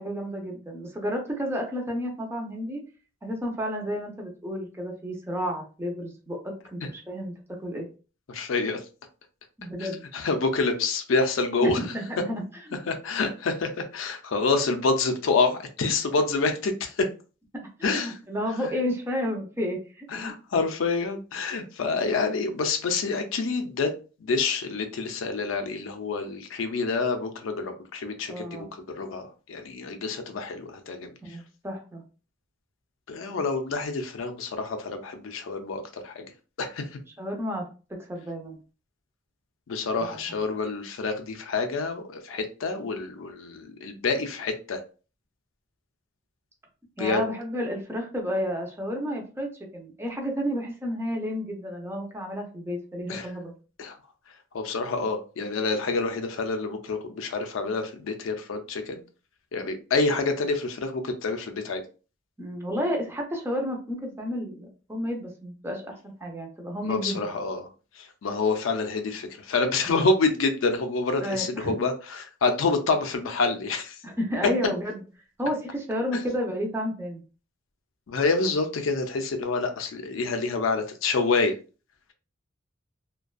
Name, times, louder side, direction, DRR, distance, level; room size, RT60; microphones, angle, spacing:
voice 1, 0.0-2.8 3.2-7.3 7.6-7.9 9.6-10.0 11.6-12.8 17.8-20.3 28.3-28.7 31.2-32.0 37.2-37.6 37.9-38.6 40.1-40.4 47.0-53.5 62.4-67.3 69.8-69.9 71.2-71.7 74.0-75.0 75.4-77.2, equal, 15° right, 1 dB, 0.5 m, -31 dB
voice 2, 8.3-8.8 9.8-11.9 12.9-17.1 17.8-18.2 20.1-23.9 24.2-28.7 28.9-31.1 33.1-36.3 36.6-37.0 39.7-44.8 47.0-47.2 53.1-53.3 53.8-54.0 54.5-58.9 59.5-61.8 66.8-67.7 68.0-74.0 76.1-76.2 78.1-81.5, left 3 dB, 85° left, 6 dB, 0.4 m, -27 dB
2.5 x 2.2 x 2.3 m, 0.35 s
head